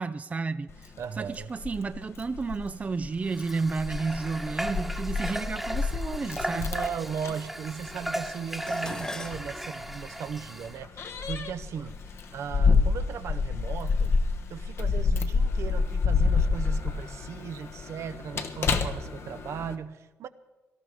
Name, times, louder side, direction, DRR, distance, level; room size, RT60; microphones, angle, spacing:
voice 1, 0.0-6.7, right 4 dB, 30° right, 12 dB, 0.4 m, -32 dB
Keys jangling, 0.7-19.7, left 4 dB, 60° left, 1.2 m, -29 dB
voice 2, 1.0-1.5 6.5-12.0 12.3-14.2 14.5-20.3, right 7 dB, 65° right, 10 dB, 0.7 m, -37 dB
Water / Water tap faucet, 3.3-10.8, right 1 dB, 5° right, 1.2 m, -36 dB
Dishes pots and pans, 8.7-13.0 13.9-14.3 14.7-15.5 15.8-15.9, left 2 dB, 15° left, 0.8 m, -44 dB
18.5 x 12.5 x 4.9 m, 1.2 s
cardioid pair, 80°, 5 cm